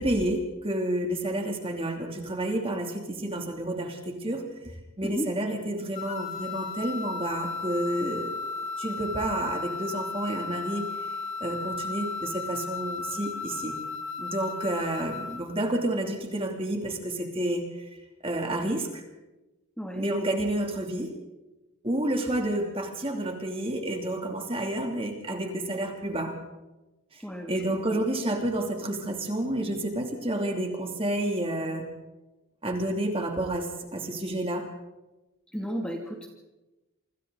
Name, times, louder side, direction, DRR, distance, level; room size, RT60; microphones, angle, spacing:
voice 1, 0.0-8.3 8.8-11.1 11.4-13.8 14.2-17.9 18.2-19.0 19.9-21.1 21.8-26.4 27.1-27.2 27.5-31.9 32.6-34.7, right 1 dB, 25° right, 2 dB, 2.9 m, -30 dB
sound 1, 5.9-15.5, left 4 dB, 30° left, 3.0 m, -35 dB
voice 2, 35.5-36.3, equal, 5° left, 1 dB, 2.4 m, -33 dB
27.5 x 25.5 x 4.0 m, 1.0 s
head